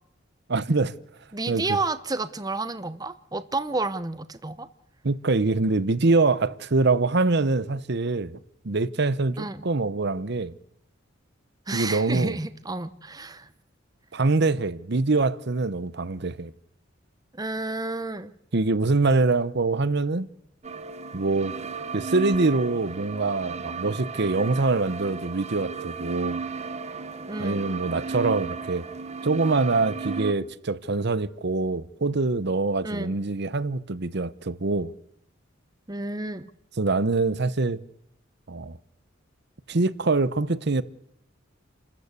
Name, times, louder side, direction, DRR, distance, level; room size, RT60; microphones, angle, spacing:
voice 1, 0.5-0.9 1.5-1.6 5.0-8.4 8.6-10.5 11.7-12.4 14.1-16.5 18.5-20.3 21.1-21.6 21.9-26.4 27.4-28.9 29.2-34.9 36.8-37.8 38.5-38.8 39.7-40.8, right 3 dB, 60° right, 0.9 m, -24 dB
voice 2, 1.3-4.7 9.4-9.6 11.7-13.5 17.3-18.3 27.3-27.6 32.8-33.1 35.9-36.5, right 2 dB, 20° right, 0.9 m, -30 dB
sound 1, 20.6-30.3, right 5 dB, 35° right, 1.2 m, -34 dB
29.5 x 13.5 x 8.3 m
head